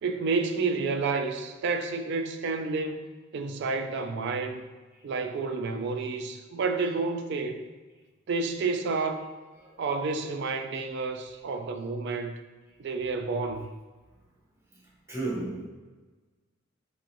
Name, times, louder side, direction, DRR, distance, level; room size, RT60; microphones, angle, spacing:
voice 1, 0.0-3.1 3.3-4.7 5.0-7.7 8.3-9.3 9.8-12.3 12.8-13.7, right 4 dB, 55° right, 5 dB, 0.3 m, -30 dB
voice 2, 15.1-15.7, right 2 dB, 15° right, -6 dB, 0.7 m, -34 dB
4.6 x 2.9 x 2.6 m, 1.3 s
head